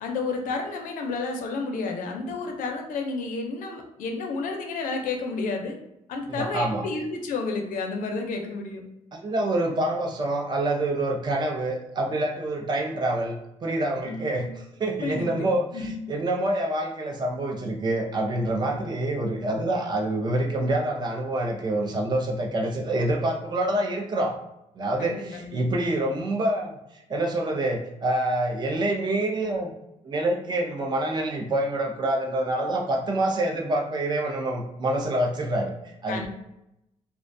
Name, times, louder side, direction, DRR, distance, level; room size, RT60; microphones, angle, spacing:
voice 1, 0.0-5.8 6.1-8.8 14.0-14.5 15.0-15.3 15.7-16.0 18.7-18.8 25.0-25.6 36.1-36.3, left 3 dB, 85° left, 3 dB, 0.5 m, -31 dB
voice 2, 6.2-6.8 9.1-24.4 24.8-29.7 30.0-36.3, right 1 dB, 35° right, 1 dB, 0.4 m, -26 dB
2.3 x 2.2 x 2.6 m, 0.84 s
cardioid pair, 140°, 14 cm